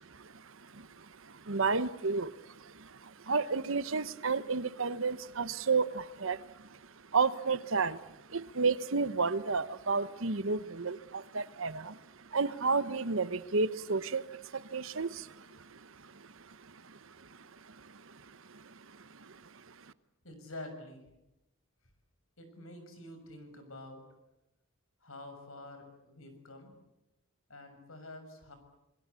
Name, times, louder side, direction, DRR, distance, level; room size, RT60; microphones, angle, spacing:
voice 1, 1.5-2.3 3.3-6.4 7.1-8.0 8.3-11.9 12.3-14.2 14.7-15.1, right 4 dB, 65° right, 14 dB, 1.1 m, -30 dB
voice 2, 20.2-21.0 22.4-24.0 25.0-26.7 27.5-28.6, left 1 dB, 70° left, 7 dB, 6.5 m, -47 dB
27.0 x 22.0 x 8.3 m, 0.92 s
head